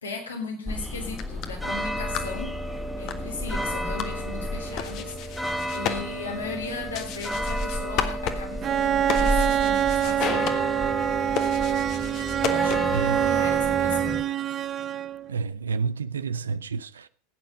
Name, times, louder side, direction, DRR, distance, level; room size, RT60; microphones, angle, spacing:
voice 1, 0.0-10.5 12.4-14.3, left 3 dB, 75° left, 3.5 m, -36 dB
sound 1, 0.7-14.2, equal, ahead, 1.4 m, -31 dB
sound 2, 1.0-13.1, left 9 dB, 45° left, 1.6 m, -35 dB
Bowed string instrument, 8.6-15.3, right 10 dB, 35° right, 0.6 m, -25 dB
voice 2, 15.3-17.1, right 5 dB, 75° right, 0.6 m, -29 dB
17.0 x 9.1 x 5.1 m
figure-of-eight pair, 80°, 0 cm